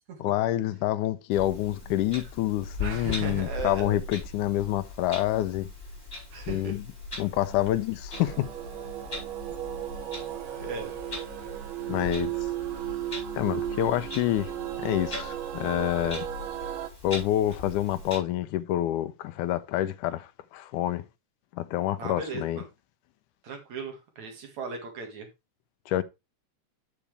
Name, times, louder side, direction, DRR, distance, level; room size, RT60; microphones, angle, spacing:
voice 1, 0.2-5.7 6.5-6.8 7.2-8.5 11.9-12.5 13.3-14.5 14.8-16.3 17.0-21.0 21.5-22.6 25.9-26.0, left 14 dB, 80° left, 2.1 m, -27 dB
Clock, 1.3-18.2, left 2 dB, 20° left, 5.0 m, -40 dB
voice 2, 2.8-4.0 6.3-6.8 10.6-10.9 22.0-22.6 23.4-25.3, right 4 dB, 65° right, 3.1 m, -37 dB
sound 1, 8.1-16.9, right 12 dB, 90° right, 1.1 m, -35 dB
8.5 x 7.1 x 3.3 m
omnidirectional pair, 3.7 m